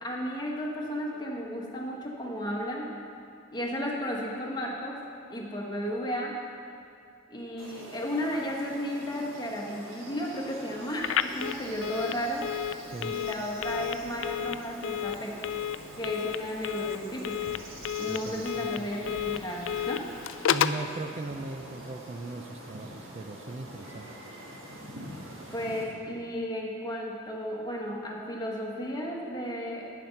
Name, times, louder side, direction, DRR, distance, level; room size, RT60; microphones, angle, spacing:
voice 1, 0.0-2.9 3.5-5.0 5.3-6.3 7.3-12.4 13.0-15.4 16.0-17.5 18.0-20.0 25.5-29.9, equal, 20° left, -2 dB, 1.2 m, -34 dB
sound 1, 7.6-25.8, right 1 dB, 65° right, 1.6 m, -46 dB
Telephone, 11.0-20.9, left 9 dB, 65° left, 0.3 m, -32 dB
voice 2, 18.1-18.9 20.5-24.1, right 3 dB, 30° right, 4 dB, 0.4 m, -38 dB
9.3 x 7.5 x 5.7 m, 2.4 s
head